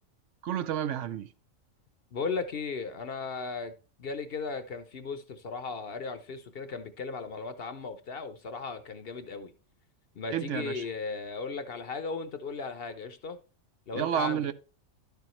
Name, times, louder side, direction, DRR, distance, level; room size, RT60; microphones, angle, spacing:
voice 1, 0.4-1.3 10.3-10.8 13.9-14.5, right 10 dB, 70° right, 0.9 m, -30 dB
voice 2, 2.1-3.7 4.0-9.5 10.2-13.4 13.9-14.5, left 4 dB, 55° left, 0.9 m, -36 dB
11.0 x 7.0 x 3.1 m
omnidirectional pair, 1.4 m